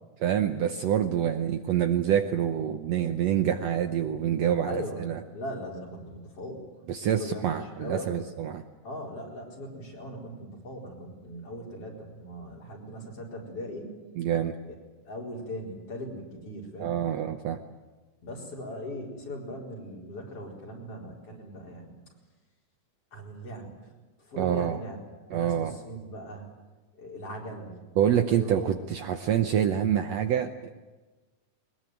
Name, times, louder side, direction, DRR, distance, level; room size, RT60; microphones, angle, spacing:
voice 1, 0.2-5.2 6.9-8.6 14.2-14.6 16.8-17.6 24.3-24.8 25.3-25.8 28.0-30.8, right 9 dB, 70° right, 7 dB, 1.8 m, -26 dB
voice 2, 4.7-6.6 7.1-8.2 8.8-13.9 15.1-17.0 18.2-21.9 23.1-23.7 24.3-25.0 25.3-26.5 27.0-27.8 28.3-28.7, equal, 45° left, -1 dB, 5.3 m, -39 dB
22.0 x 20.5 x 9.3 m, 1.2 s
omnidirectional pair, 3.7 m